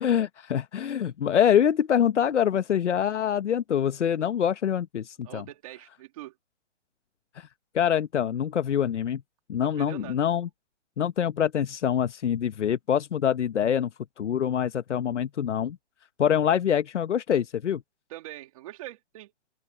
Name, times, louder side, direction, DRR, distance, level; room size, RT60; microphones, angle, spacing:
voice 1, 0.0-5.4 7.3-7.5 7.7-9.2 9.5-10.5 11.0-13.9 14.2-15.8 16.2-17.8, left 9 dB, 80° left, 1.0 m, -25 dB
voice 2, 5.2-6.3 9.6-10.2 18.1-19.3, right 15 dB, 30° right, 2.4 m, -43 dB
open air
hypercardioid pair, 165°, 35 cm